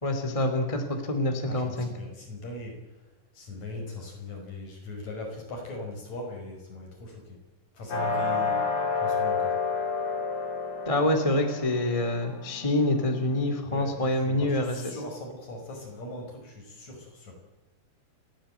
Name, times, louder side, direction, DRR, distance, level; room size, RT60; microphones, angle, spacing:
voice 1, 0.0-1.9 10.9-14.9, left 1 dB, 10° left, 5 dB, 1.8 m, -26 dB
voice 2, 1.4-2.8 3.3-7.4 7.7-8.6 9.0-9.5 13.7-17.4, left 2 dB, 40° left, 1 dB, 6.6 m, -39 dB
sound 1, 7.9-13.5, left 5 dB, 55° left, 5.8 m, -30 dB
30.0 x 13.0 x 9.2 m, 1.1 s
omnidirectional pair, 5.0 m